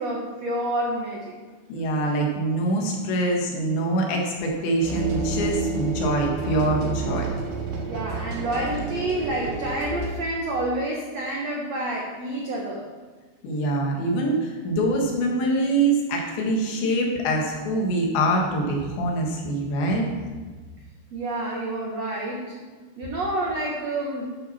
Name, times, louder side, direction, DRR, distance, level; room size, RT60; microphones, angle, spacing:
voice 1, 0.0-1.3 7.9-12.8 21.1-22.6 23.0-24.3, right 1 dB, 80° right, -2 dB, 1.5 m, -28 dB
voice 2, 1.7-7.3 13.4-20.1, right 1 dB, 80° left, 0 dB, 3.9 m, -24 dB
sound 1, 4.8-10.1, right 4 dB, 65° right, 3.6 m, -29 dB
11.0 x 9.5 x 4.3 m, 1.3 s
omnidirectional pair, 5.0 m